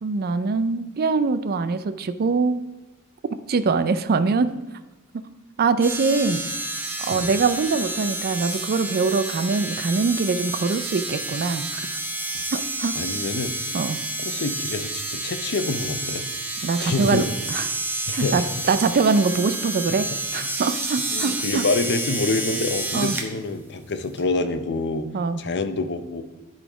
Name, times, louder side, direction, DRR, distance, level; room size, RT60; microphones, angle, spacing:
voice 1, 0.0-2.6 3.5-4.5 5.1-5.2 5.6-6.4 7.0-12.0 12.5-12.9 13.7-14.0 16.6-17.7 18.1-21.6 22.9-23.1 25.1-25.4, right 4 dB, 45° right, 12 dB, 0.4 m, -23 dB
sound 1, 5.8-23.3 24.2-24.3, right 2 dB, 10° right, 0.9 m, -30 dB
voice 2, 12.9-13.5 14.2-16.3 16.8-17.3 18.1-18.5 19.9-20.0 21.1-25.1 25.4-26.2, left 3 dB, 50° left, 10 dB, 0.6 m, -27 dB
12.0 x 4.2 x 4.9 m, 1.1 s
head